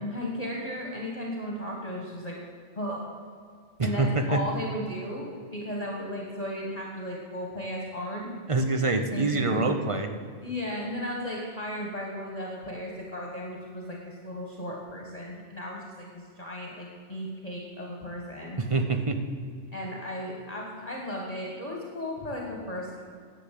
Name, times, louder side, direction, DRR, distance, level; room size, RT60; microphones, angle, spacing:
voice 1, 0.0-2.4 2.7-3.1 3.8-8.3 8.9-9.7 10.4-18.6 19.7-23.1, left 1 dB, 30° left, -2 dB, 1.6 m, -35 dB
voice 2, 3.8-4.4 8.5-10.1 18.6-19.2, right 3 dB, 30° right, 6 dB, 0.7 m, -25 dB
10.5 x 8.1 x 7.5 m, 2.2 s
omnidirectional pair, 1.4 m